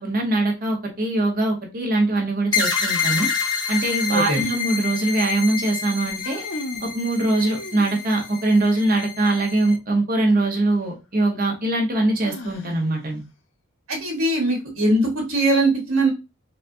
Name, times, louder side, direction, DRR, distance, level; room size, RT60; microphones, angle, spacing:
voice 1, 0.0-3.3 3.7-6.4 6.8-13.2, right 2 dB, 45° right, 1 dB, 0.9 m, -22 dB
sound 1, 2.5-9.8, left 6 dB, 20° left, 0.7 m, -28 dB
sound 2, 4.3-5.5 6.1-7.0 7.4-8.3 10.3-10.4 12.2-13.1, left 1 dB, 60° left, 0.6 m, -38 dB
voice 2, 13.9-16.1, right 2 dB, 70° right, 0 dB, 1.3 m, -21 dB
4.0 x 2.2 x 2.5 m, 0.26 s
head